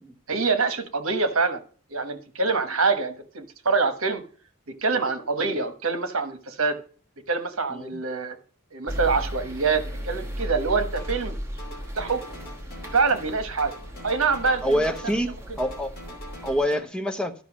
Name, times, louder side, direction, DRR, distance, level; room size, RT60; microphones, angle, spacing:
voice 1, 0.3-1.6 1.9-4.2 4.8-6.8 7.3-8.4 8.7-11.4 11.9-12.2 12.9-13.7 14.0-14.6 15.0-15.2, right 4 dB, 65° right, 9 dB, 1.2 m, -25 dB
voice 2, 7.7-8.0 14.6-15.9 16.4-17.3, equal, 5° left, 5 dB, 0.8 m, -26 dB
sound 1, 8.9-16.7, equal, 15° right, 1.5 m, -36 dB
sound 2, 10.9-11.3 11.6-13.3 13.6-15.3 15.6-16.8, left 1 dB, 45° left, 2.7 m, -43 dB
12.0 x 5.6 x 6.1 m, 0.42 s
head